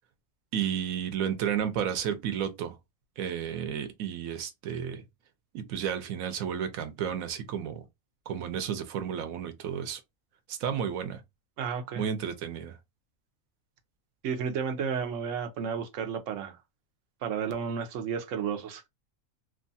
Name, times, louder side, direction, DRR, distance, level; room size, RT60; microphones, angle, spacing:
voice 1, 0.5-2.8 3.2-5.0 5.5-7.8 8.3-10.0 10.5-11.2 12.0-12.8, right 8 dB, 90° right, 1.0 m, -32 dB
voice 2, 11.6-12.0 14.2-16.6 17.2-18.8, right 6 dB, 70° right, 1.0 m, -32 dB
3.0 x 2.3 x 2.6 m
omnidirectional pair, 1.4 m